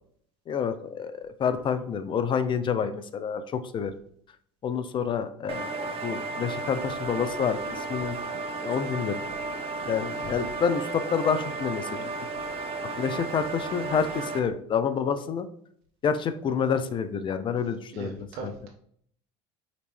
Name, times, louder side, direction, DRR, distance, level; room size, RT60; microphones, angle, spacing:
voice 1, 0.5-3.9 4.6-8.2 8.6-9.2 9.9-12.1 12.4-12.7 13.0-15.5 16.0-18.5, left 6 dB, 35° left, 11 dB, 0.5 m, -28 dB
sound 1, 5.5-14.4, right 3 dB, 40° right, 0.7 m, -34 dB
voice 2, 17.9-18.7, right 3 dB, 70° right, 2 dB, 1.2 m, -39 dB
4.9 x 3.2 x 3.2 m, 0.64 s
hypercardioid pair, 80°, 14 cm